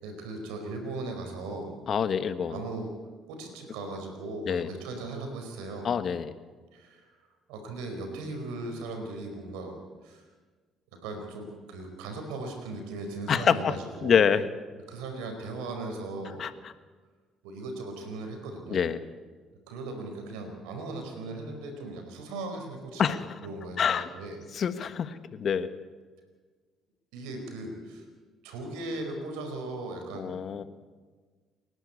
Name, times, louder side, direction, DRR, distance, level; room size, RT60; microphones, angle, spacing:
voice 1, 0.0-1.8 2.5-2.9 3.3-5.9 6.7-7.2 7.5-10.3 10.9-14.2 14.9-16.5 17.4-18.8 19.7-23.1 23.4-24.4 27.1-28.0 28.4-30.7, right 2 dB, 90° right, 4 dB, 4.7 m, -38 dB
voice 2, 1.9-2.6 4.5-4.7 5.8-6.3 13.3-13.7 14.0-14.4 16.4-16.5 18.7-19.0 23.0-23.2 23.8-24.1 24.5-25.7 30.1-30.6, left 7 dB, 55° left, 12 dB, 1.3 m, -26 dB
28.5 x 11.5 x 8.3 m, 1.4 s
supercardioid pair, 75°, 0 cm